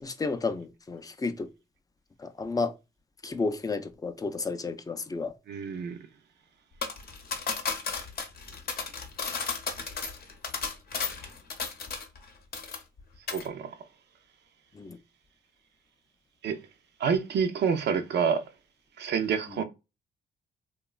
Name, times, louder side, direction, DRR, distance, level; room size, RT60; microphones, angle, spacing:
voice 1, 0.0-1.5 2.2-2.7 3.2-5.3 14.7-15.0 19.5-19.6, left 4 dB, 20° left, 0.4 m, -32 dB
voice 2, 5.5-6.0 13.3-13.7 16.4-16.6 17.0-18.4 19.0-19.6, right 6 dB, 60° right, 0.5 m, -27 dB
sound 1, 6.8-12.2 12.5-13.0 13.3-13.5, left 5 dB, 50° left, 0.7 m, -34 dB
2.9 x 2.2 x 2.3 m
cardioid pair, 90°, 20 cm